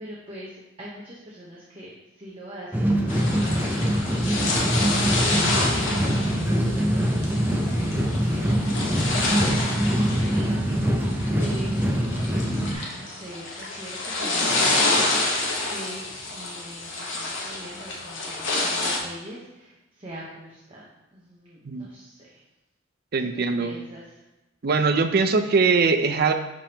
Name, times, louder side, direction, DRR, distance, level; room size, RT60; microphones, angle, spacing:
voice 1, 0.0-12.4 12.7-20.8 21.1-22.4 23.2-24.2, equal, 30° right, -6 dB, 1.0 m, -42 dB
sound 1, 2.7-12.7, equal, 10° right, 0.6 m, -24 dB
sound 2, 3.1-19.0, left 2 dB, 70° left, 1.2 m, -28 dB
voice 2, 23.1-23.7 24.6-26.3, right 4 dB, 55° right, 8 dB, 0.5 m, -21 dB
10.0 x 3.5 x 2.9 m, 1.0 s
head